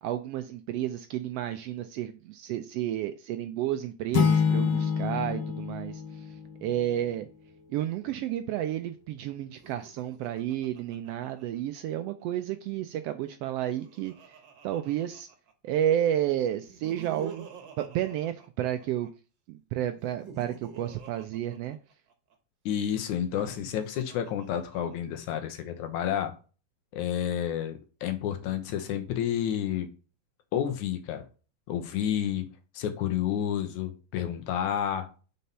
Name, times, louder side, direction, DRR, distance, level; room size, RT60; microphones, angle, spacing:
voice 1, 0.0-6.0 6.6-7.3 7.7-14.1 14.6-15.3 15.6-17.5 17.8-19.1 19.5-21.8, right 11 dB, 85° right, 1.4 m, -31 dB
sound 1, 4.1-6.9, left 6 dB, 65° left, 1.2 m, -27 dB
Laughter, 9.5-12.0 13.3-15.7 16.6-19.1 19.9-22.4 23.2-25.1, right 6 dB, 55° right, 1.4 m, -48 dB
voice 2, 22.7-26.3 26.9-29.9 30.5-31.2 31.7-32.5 32.7-35.1, left 9 dB, 90° left, 2.4 m, -30 dB
5.6 x 4.2 x 5.4 m
omnidirectional pair, 3.3 m